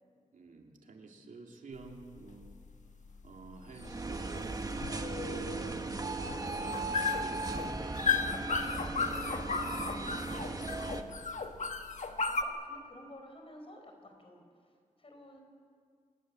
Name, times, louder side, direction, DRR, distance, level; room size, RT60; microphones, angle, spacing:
voice 1, 0.3-2.6 3.2-4.7 5.3-5.8 6.2-8.3 8.9-9.5 10.1-11.3, right 3 dB, 85° right, 1 dB, 2.8 m, -50 dB
sound 1, 1.7-12.4, left 5 dB, 70° left, 1.4 m, -35 dB
sound 2, 3.8-11.0, right 2 dB, 30° right, 1.4 m, -37 dB
voice 2, 12.0-15.4, left 1 dB, 45° left, 4 dB, 4.9 m, -53 dB
27.0 x 19.0 x 7.7 m, 2.1 s
wide cardioid pair, 90°, 13 cm